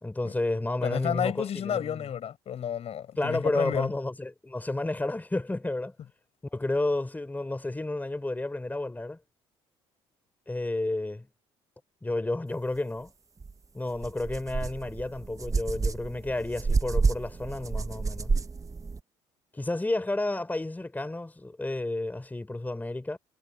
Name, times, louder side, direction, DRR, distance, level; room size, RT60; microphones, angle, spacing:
voice 1, 0.0-2.1 3.2-5.9 6.5-9.2 10.5-11.3 12.0-13.1 13.7-18.4 19.6-23.2, left 2 dB, 15° left, 4.4 m, -31 dB
voice 2, 0.8-3.9, left 9 dB, 55° left, 6.5 m, -31 dB
sound 1, 13.4-13.5 14.0-19.0, right 4 dB, 25° right, 1.2 m, -29 dB
hypercardioid pair, 65°, 13 cm